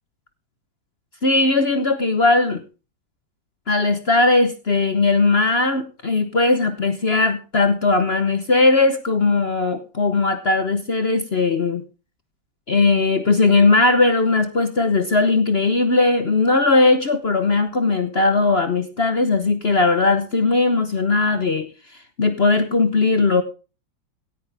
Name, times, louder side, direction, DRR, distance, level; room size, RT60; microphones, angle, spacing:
voice 1, 1.2-2.6 3.7-11.8 12.7-21.7 22.2-23.4, left 3 dB, 40° left, 9 dB, 0.9 m, -18 dB
17.0 x 10.0 x 3.4 m, 0.32 s
omnidirectional pair, 2.1 m